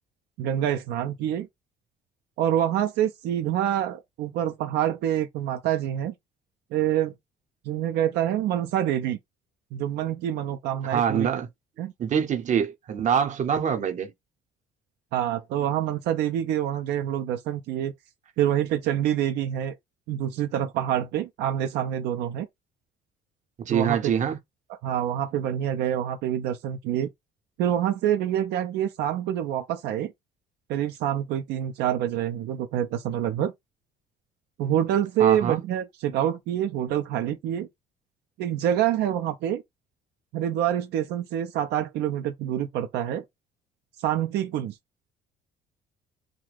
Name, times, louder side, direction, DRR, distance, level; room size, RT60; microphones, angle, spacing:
voice 1, 0.4-1.5 2.4-6.1 6.7-7.1 7.7-9.2 9.7-11.3 11.8-11.9 15.1-17.9 18.4-19.8 20.1-22.5 23.7-24.1 24.8-27.1 27.6-30.1 30.7-33.5 34.6-37.7 38.4-39.6 40.3-43.2 44.0-44.8, right 11 dB, 80° right, 0.5 m, -26 dB
voice 2, 10.9-11.5 12.0-14.1 23.6-24.4 35.2-35.6, right 8 dB, 45° right, 0.7 m, -24 dB
2.4 x 2.2 x 3.3 m
cardioid pair, 110°, 17 cm